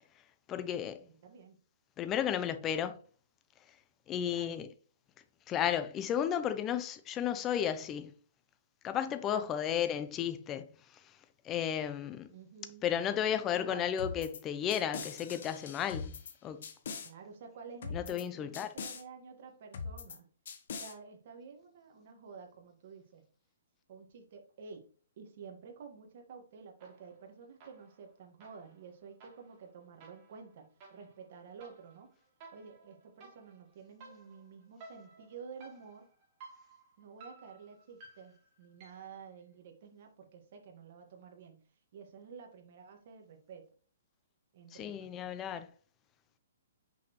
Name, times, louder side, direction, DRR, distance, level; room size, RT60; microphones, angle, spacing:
voice 1, 0.5-1.0 2.0-3.0 4.1-4.7 5.5-8.1 8.8-10.7 11.4-12.3 12.8-16.2 16.4-16.7 17.9-18.7 44.7-45.7, left 9 dB, 20° left, 0.5 m, -33 dB
voice 2, 1.0-1.6 4.2-4.6 9.3-9.7 12.3-12.9 13.5-13.9 16.9-20.3 20.8-23.2 23.9-24.9 25.2-32.1 32.5-36.1 37.0-41.6 41.9-43.7 44.5-45.6, right 5 dB, 50° right, 1.6 m, -51 dB
sound 1, 14.0-14.4 14.7-16.3 16.6-17.1 17.8-18.2 18.5-19.0 19.7-20.2 20.5-20.9, left 5 dB, 60° left, 1.1 m, -42 dB
sound 2, 26.8-27.3 27.6-39.2, right 3 dB, 30° right, 2.7 m, -57 dB
6.3 x 5.8 x 3.1 m
hypercardioid pair, 160°, 0 cm